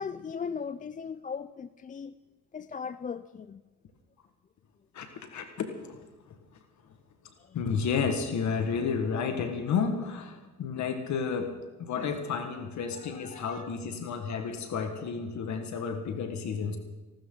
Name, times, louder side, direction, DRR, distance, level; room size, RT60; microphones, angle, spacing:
voice 1, 0.0-2.1 2.5-3.6 7.4-7.6 12.9-13.8, left 6 dB, 25° left, 0.4 m, -38 dB
voice 2, 4.9-6.0 7.5-16.8, left 6 dB, 70° left, 1.8 m, -31 dB
24.5 x 12.5 x 3.9 m
cardioid pair, 90°, 30 cm